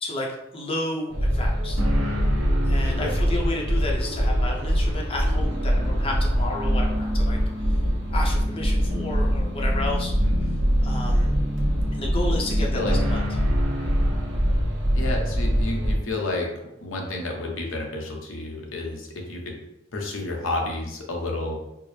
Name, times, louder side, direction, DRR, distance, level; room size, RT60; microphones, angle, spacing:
voice 1, 0.0-1.8 2.7-7.4 7.7-7.8 8.1-10.2 10.8-11.3 11.9-13.2 13.8-13.9, left 1 dB, 30° left, -1 dB, 0.6 m, -32 dB
sound 1, 1.1-16.0, equal, 70° right, 0.9 m, -23 dB
voice 2, 10.1-10.6 12.7-13.0 14.9-16.5 16.8-19.6 19.9-21.6, left 2 dB, 75° left, 1 dB, 0.8 m, -30 dB
4.4 x 2.0 x 3.2 m, 0.86 s
head